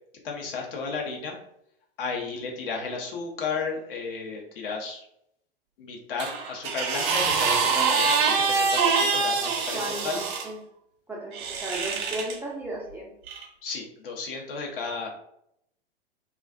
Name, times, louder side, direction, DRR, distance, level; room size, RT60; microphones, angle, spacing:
voice 1, 0.2-1.4 2.0-5.1 5.8-10.2 13.6-15.1, left 4 dB, 60° left, 0 dB, 0.8 m, -33 dB
sound 1, 6.2-10.5 11.3-12.4 13.3-13.4, right 5 dB, 50° right, 0.6 m, -25 dB
voice 2, 9.7-10.2 10.4-10.6 11.1-11.4 11.6-13.1, right 1 dB, 5° right, -5 dB, 0.4 m, -34 dB
2.4 x 2.3 x 2.3 m, 0.74 s
figure-of-eight pair, 100°, 31 cm